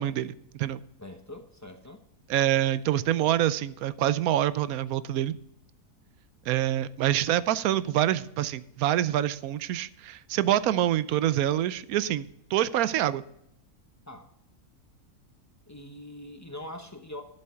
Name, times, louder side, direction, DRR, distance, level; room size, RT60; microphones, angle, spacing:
voice 1, 0.0-0.8 2.3-5.4 6.5-12.2 12.5-13.2, right 12 dB, 75° right, 16 dB, 1.0 m, -26 dB
voice 2, 1.0-2.0 14.1-14.3 15.7-17.2, left 1 dB, 15° left, 5 dB, 0.7 m, -42 dB
11.0 x 7.6 x 4.4 m, 0.77 s
omnidirectional pair, 1.6 m